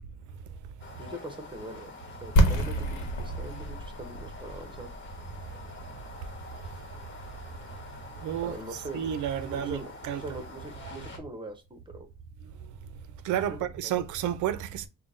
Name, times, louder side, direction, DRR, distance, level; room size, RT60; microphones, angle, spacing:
sound 1, 0.8-11.2, left 2 dB, 40° left, 1.4 m, -46 dB
voice 1, 1.0-4.9 8.4-9.1 9.4-12.1 13.5-13.9, right 2 dB, 15° right, 1.0 m, -42 dB
sound 2, 2.4-8.1, right 1 dB, 80° left, 1.0 m, -29 dB
voice 2, 8.2-8.5 8.9-10.2 13.2-14.9, right 10 dB, 80° right, 0.6 m, -31 dB
3.7 x 2.2 x 3.6 m
cardioid pair, 90°, 30 cm